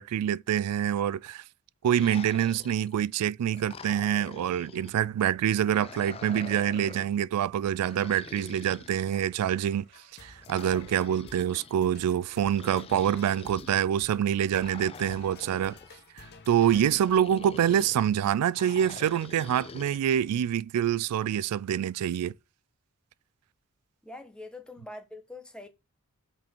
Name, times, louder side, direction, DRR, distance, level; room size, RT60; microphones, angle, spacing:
voice 1, 0.0-1.4 1.8-9.8 10.2-15.8 16.2-22.3, right 9 dB, 90° right, 0.3 m, -26 dB
sound 1, 1.8-3.1 3.5-5.0 5.5-7.2 7.8-9.5 10.4-11.7 12.5-13.8 14.6-15.9 16.5-18.1 18.5-20.0, left 4 dB, 25° left, 0.4 m, -46 dB
sound 2, 9.4-18.0, left 4 dB, 50° left, 0.9 m, -53 dB
voice 2, 24.0-25.7, left 2 dB, 5° left, 1.0 m, -44 dB
5.4 x 5.4 x 4.4 m
head